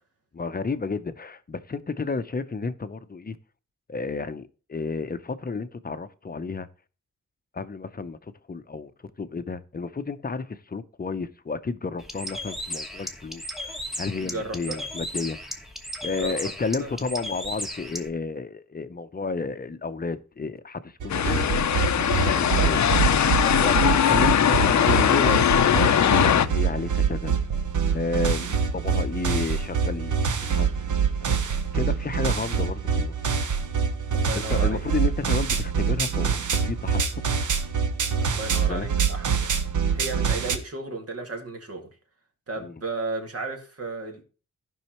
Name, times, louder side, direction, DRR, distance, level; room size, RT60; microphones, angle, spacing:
voice 1, 0.3-3.4 3.9-6.7 7.5-8.9 9.2-15.4 16.0-21.5 22.0-22.8 23.4-27.3 27.9-30.7 31.2-31.5 31.7-33.1 34.3-37.0 38.7-38.9 42.6-42.7, left 4 dB, 30° left, 0.7 m, -31 dB
Bird, 12.0-18.1, equal, ahead, 1.2 m, -35 dB
voice 2, 14.2-14.9 16.1-16.4 16.8-17.0 22.4-22.8 23.5-23.8 34.1-34.8 38.1-39.5 39.9-41.9 42.5-44.2, right 3 dB, 50° right, 2.2 m, -34 dB
sound 1, 21.0-40.6, right 6 dB, 80° right, 1.0 m, -25 dB
sound 2, 21.1-26.5, left 9 dB, 65° left, 0.6 m, -20 dB
15.5 x 5.5 x 3.0 m
wide cardioid pair, 90°, 30 cm